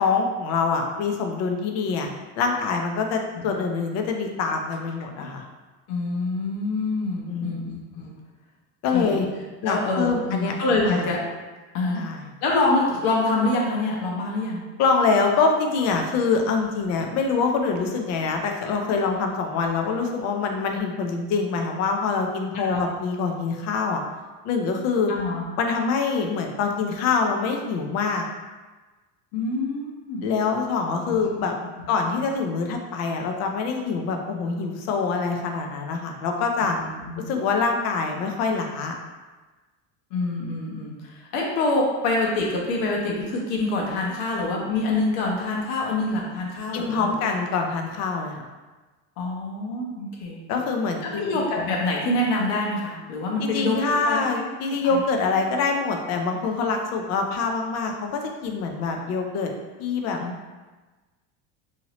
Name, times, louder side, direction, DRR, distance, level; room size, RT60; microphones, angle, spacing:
voice 1, 0.0-5.4 7.3-7.6 8.8-9.3 9.6-11.1 12.0-12.3 14.8-24.0 24.4-25.1 25.6-28.3 30.2-31.5 31.9-36.8 37.2-38.9 46.7-48.4 50.5-51.4 53.4-59.5 59.8-60.2, left 4 dB, 45° left, 3 dB, 0.4 m, -25 dB
voice 2, 5.9-8.0 8.9-9.2 9.6-11.2 11.7-12.0 12.4-14.6 22.5-22.8 25.1-25.4 29.3-30.3 31.1-31.2 31.8-31.9 36.6-37.2 40.1-47.2 49.2-50.4 51.0-54.5 54.8-55.0 60.2-60.3, left 2 dB, 70° left, -2 dB, 0.9 m, -26 dB
2.9 x 2.8 x 2.8 m, 1.2 s
cardioid pair, 145°, 40 cm